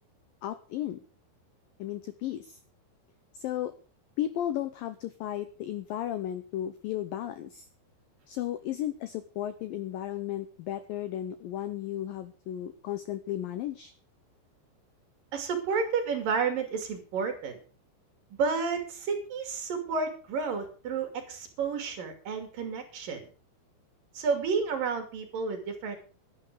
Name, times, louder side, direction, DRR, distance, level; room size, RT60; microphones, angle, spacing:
voice 1, 0.4-1.0 1.8-2.6 3.3-3.7 4.2-7.7 8.3-13.9, left 12 dB, 80° left, 12 dB, 2.0 m, -34 dB
voice 2, 15.3-17.6 18.4-23.3 24.1-26.0, right 5 dB, 55° right, 6 dB, 3.9 m, -31 dB
12.0 x 10.5 x 6.7 m, 0.38 s
omnidirectional pair, 5.2 m